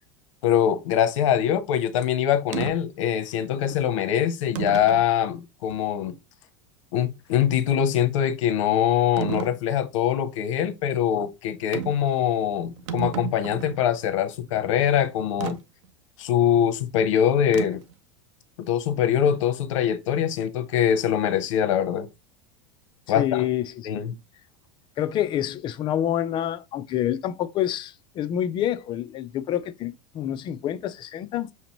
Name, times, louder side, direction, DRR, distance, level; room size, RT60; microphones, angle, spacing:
voice 1, 0.4-6.2 6.9-15.6 16.2-17.8 18.7-22.1 23.1-23.4 23.8-24.1, left 9 dB, 85° left, 0.8 m, -23 dB
sound 1, 2.5-2.8 3.7-3.8 4.5-5.1 5.7-5.8 9.2-9.6 11.7-12.1 12.4-12.5 12.7-13.8 15.4-15.6 17.5-17.9, right 9 dB, 75° right, 0.6 m, -31 dB
voice 2, 23.1-23.7 25.0-31.5, left 11 dB, 30° left, 0.4 m, -27 dB
5.8 x 2.8 x 2.9 m
supercardioid pair, 140°, 16 cm